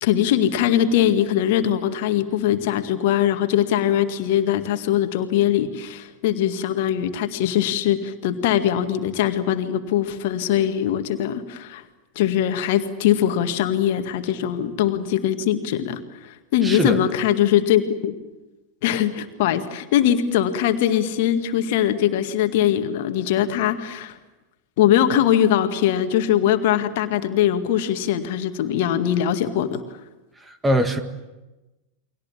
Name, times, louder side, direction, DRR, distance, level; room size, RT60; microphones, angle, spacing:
voice 1, 0.0-11.8 12.2-18.1 18.8-24.2 24.8-29.8, left 10 dB, 50° left, 8 dB, 1.9 m, -21 dB
voice 2, 16.6-17.0 30.4-31.0, right 1 dB, 10° right, 9 dB, 1.8 m, -22 dB
30.0 x 23.5 x 7.4 m, 1.1 s
figure-of-eight pair, 90°, 0 cm